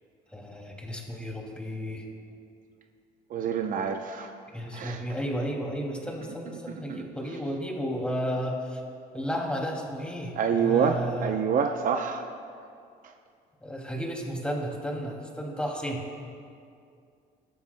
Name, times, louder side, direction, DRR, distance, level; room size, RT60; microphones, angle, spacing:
voice 1, 0.3-2.1 4.5-8.8 9.1-11.3 13.6-16.1, equal, 5° left, 0 dB, 2.4 m, -33 dB
voice 2, 3.3-4.3 4.7-5.0 6.9-7.0 10.3-12.2 13.0-13.1, right 6 dB, 55° right, 5 dB, 0.7 m, -27 dB
23.5 x 12.5 x 2.2 m, 2.4 s
cardioid pair, 110°, 17 cm